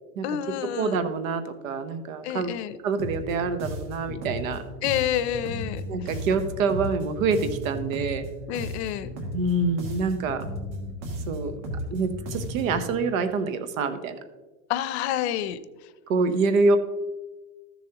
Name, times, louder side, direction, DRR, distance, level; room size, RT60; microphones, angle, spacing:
voice 1, 0.2-1.0 2.2-2.8 4.8-6.1 8.5-9.1 14.7-15.6, left 11 dB, 55° left, 13 dB, 0.6 m, -28 dB
voice 2, 0.8-2.5 2.8-4.6 5.9-8.3 9.3-10.4 11.3-11.6 11.9-14.2 16.1-16.8, right 4 dB, 85° right, 9 dB, 1.1 m, -26 dB
sound 1, 3.0-12.9, equal, 65° right, 2.3 m, -35 dB
13.5 x 7.1 x 2.9 m, 1.2 s
supercardioid pair, 175°, 39 cm